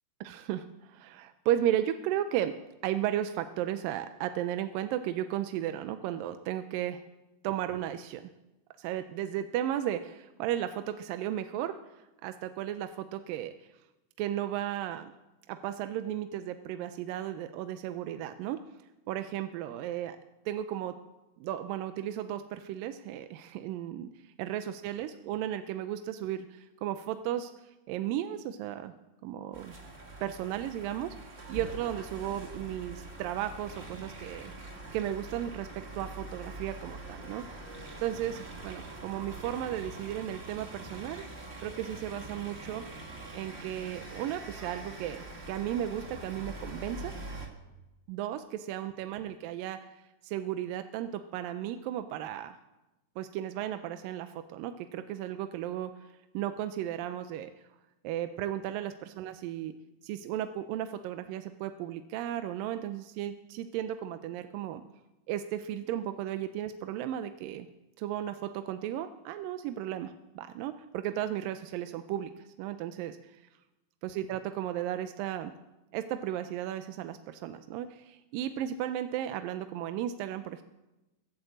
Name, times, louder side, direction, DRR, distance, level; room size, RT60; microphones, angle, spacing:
voice 1, 0.2-7.0 7.4-8.3 8.8-11.8 12.2-13.5 14.2-15.1 15.5-18.6 19.1-20.2 20.5-21.0 21.4-27.5 27.9-28.9 29.2-29.7 30.2-34.5 34.9-35.7 35.9-37.5 38.0-41.2 41.6-42.9 43.3-47.1 48.1-52.6 53.2-57.5 58.0-59.7 60.0-64.8 65.3-67.7 68.0-73.4 74.0-75.5 75.9-80.6, right 11 dB, 85° right, 10 dB, 2.4 m, -35 dB
sound 1, 29.5-47.5, right 2 dB, 30° right, 1.2 m, -44 dB
21.5 x 8.1 x 7.8 m, 1.0 s
omnidirectional pair, 4.0 m